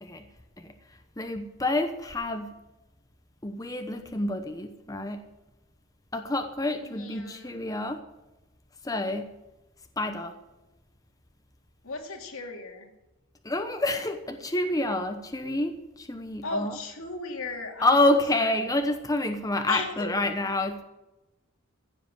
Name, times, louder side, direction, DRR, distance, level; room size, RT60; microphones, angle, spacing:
voice 1, 1.2-2.6 3.4-5.3 6.1-8.0 8.8-9.3 10.0-10.3 13.4-16.8 17.8-20.8, left 2 dB, 15° left, 6 dB, 0.9 m, -28 dB
voice 2, 6.7-7.6 11.8-12.9 16.4-18.5 19.7-20.1, left 3 dB, 80° left, 3 dB, 2.5 m, -36 dB
15.5 x 7.6 x 7.7 m, 1.0 s
head